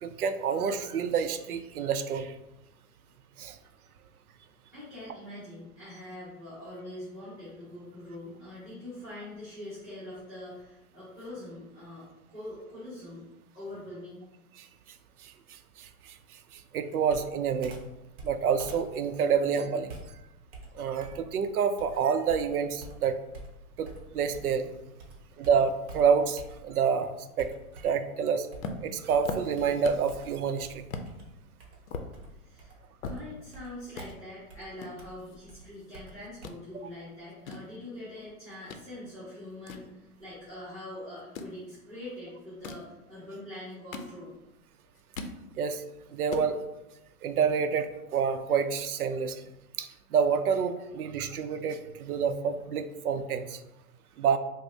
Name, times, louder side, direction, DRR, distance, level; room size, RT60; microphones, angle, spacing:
voice 1, 0.0-2.3 3.4-3.6 14.6-14.7 15.2-16.2 16.5-17.8 18.2-20.0 20.7-23.2 23.8-23.9 24.1-24.7 25.4-27.5 27.8-28.5 28.8-30.8 36.7-36.8 45.6-45.8 46.1-46.6 47.2-49.4 49.8-53.6 54.2-54.4, right 6 dB, 80° right, 9 dB, 0.5 m, -28 dB
voice 2, 4.7-13.3 13.5-14.2 32.4-44.3, left 1 dB, 5° right, -13 dB, 1.5 m, -43 dB
Computer keyboard, 17.1-24.7 25.0-26.9 27.4-28.1 28.5-36.5, right 2 dB, 45° right, 0.9 m, -48 dB
sound 1, 28.6-30.2 30.5-30.6 30.9-31.1 31.6-33.6 33.9-34.1 34.8-36.0 36.2-36.6 37.2-38.9 39.3-40.6 41.2-41.6 42.4-42.9 43.6-44.5 44.8-45.4 45.8-45.9 46.1-46.5, left 4 dB, 65° left, 0.6 m, -40 dB
4.8 x 2.0 x 2.6 m, 0.94 s
hypercardioid pair, 145°, 44 cm